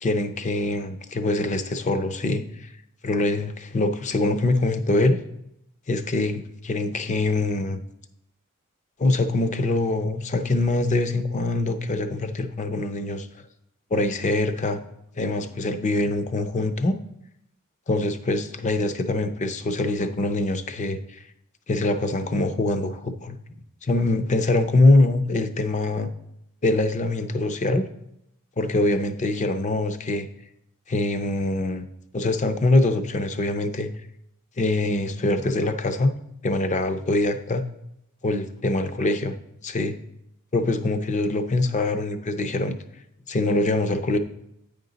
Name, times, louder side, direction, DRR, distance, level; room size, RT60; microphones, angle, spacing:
voice 1, 0.0-2.7 3.0-5.2 5.9-7.8 9.0-13.3 13.9-14.8 15.2-17.0 17.9-21.2 21.7-23.4 23.8-26.1 26.6-27.9 28.6-30.3 30.9-31.9 32.1-33.9 34.6-36.1 36.4-37.6 38.2-39.3 39.6-39.9 40.5-42.8 43.3-44.2, left 2 dB, 35° left, 9 dB, 0.5 m, -23 dB
8.9 x 5.1 x 3.9 m, 0.79 s
head